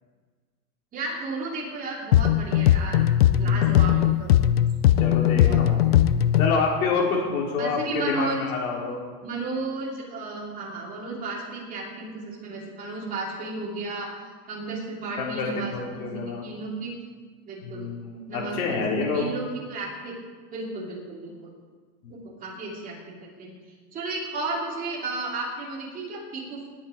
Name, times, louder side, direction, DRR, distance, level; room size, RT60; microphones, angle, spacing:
voice 1, 0.9-3.0 3.4-4.3 5.4-5.8 7.6-8.4 9.2-14.1 14.5-16.1 16.4-16.9 17.5-17.9 18.3-20.1 20.5-21.5 22.1-23.6 23.9-26.7, right 3 dB, 15° right, -4 dB, 2.9 m, -33 dB
sound 1, 2.1-6.6, left 11 dB, 40° left, 0.4 m, -19 dB
voice 2, 3.4-3.8 5.0-5.8 6.4-9.0 15.2-16.5 17.6-19.3 22.0-22.2, left 4 dB, 65° left, -2 dB, 4.5 m, -28 dB
19.5 x 8.8 x 5.1 m, 1.5 s
supercardioid pair, 170°, 47 cm